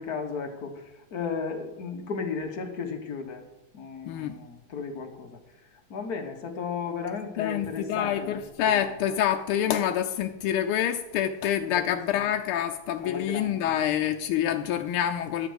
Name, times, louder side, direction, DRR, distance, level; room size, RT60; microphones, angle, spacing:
voice 1, 0.0-3.4 3.7-5.4 5.7-8.9 11.7-12.3 13.0-13.7, left 5 dB, 50° left, 4 dB, 1.5 m, -35 dB
voice 2, 7.4-15.5, left 10 dB, 90° left, 5 dB, 1.5 m, -27 dB
11.5 x 4.9 x 7.9 m, 0.97 s
omnidirectional pair, 2.3 m